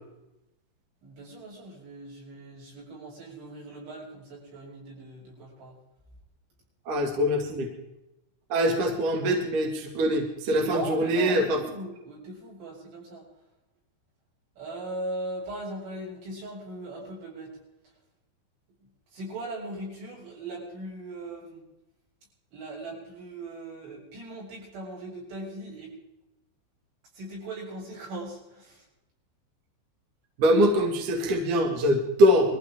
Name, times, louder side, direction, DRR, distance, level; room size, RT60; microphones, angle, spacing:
voice 1, 1.0-5.8 10.6-13.3 14.6-17.6 19.1-21.6 22.5-25.9 27.1-28.9, right 1 dB, 80° right, -4 dB, 9.6 m, -39 dB
voice 2, 6.9-7.7 8.5-11.6 30.4-32.6, equal, 50° right, 1 dB, 3.4 m, -23 dB
24.5 x 15.0 x 3.8 m, 0.91 s
omnidirectional pair, 5.4 m